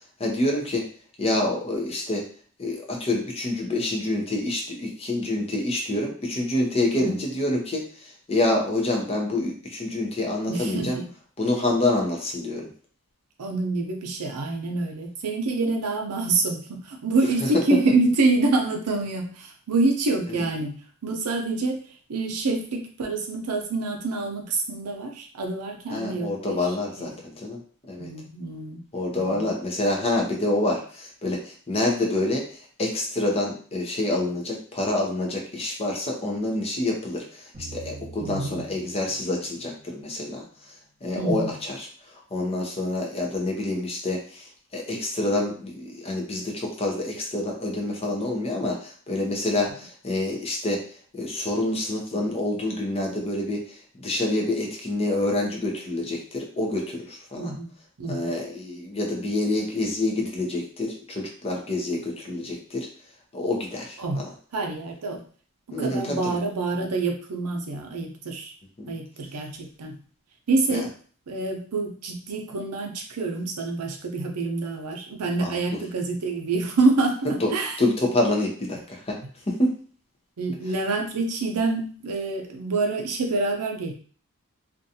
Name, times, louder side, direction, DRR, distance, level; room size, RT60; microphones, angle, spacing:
voice 1, 0.2-0.9 1.2-2.2 2.6-11.0 11.4-12.7 20.3-20.4 25.9-27.6 27.9-28.1 28.9-32.5 32.8-37.2 37.7-40.4 41.0-41.9 42.3-44.4 44.7-50.8 51.1-53.7 54.0-57.5 58.1-62.9 63.3-64.3 65.7-66.4 68.8-68.9 70.7-70.8 75.4-75.6 77.3-77.5 77.8-79.2 79.5-79.7, left 2 dB, 25° left, 1 dB, 0.6 m, -27 dB
voice 2, 10.5-11.1 13.4-26.7 27.0-27.1 28.0-28.8 29.1-29.5 38.2-38.7 41.1-41.5 57.4-57.7 58.0-58.3 64.0-64.2 64.5-65.2 65.7-68.5 68.9-70.0 70.5-70.9 71.3-77.8 80.4-83.9, right 3 dB, 85° right, 3 dB, 0.6 m, -27 dB
sound 1, 37.5-40.7, right 2 dB, 30° right, 1.0 m, -45 dB
2.5 x 2.3 x 2.7 m, 0.43 s
head